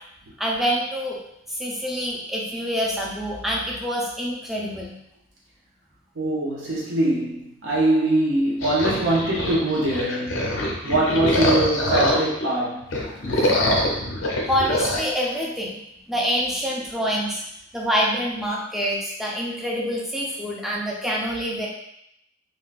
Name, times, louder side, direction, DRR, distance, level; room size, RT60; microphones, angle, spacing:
voice 1, 0.4-1.2 1.5-5.0 13.5-13.6 14.5-15.8 16.1-17.4 17.7-21.7, equal, ahead, -3 dB, 0.4 m, -26 dB
voice 2, 6.2-10.5 10.8-12.8, right 1 dB, 70° right, -4 dB, 0.6 m, -22 dB
sound 1, 8.6-12.5 12.8-15.0, left 1 dB, 75° left, 0.5 m, -24 dB
3.6 x 2.2 x 2.4 m, 0.80 s
head